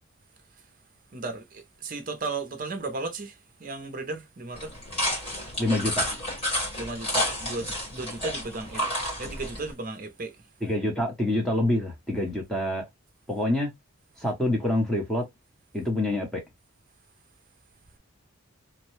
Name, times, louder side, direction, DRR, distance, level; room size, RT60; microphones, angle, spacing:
voice 1, 0.4-0.7 1.1-4.9 6.7-8.9 9.2-10.5, right 3 dB, 35° right, 0.6 m, -35 dB
sound 1, 4.6-9.7, equal, 25° left, 1.6 m, -30 dB
voice 2, 5.6-6.1 10.6-12.8 13.3-13.7 14.2-15.2 15.7-16.4, left 1 dB, ahead, 0.9 m, -26 dB
3.0 x 2.2 x 3.0 m
head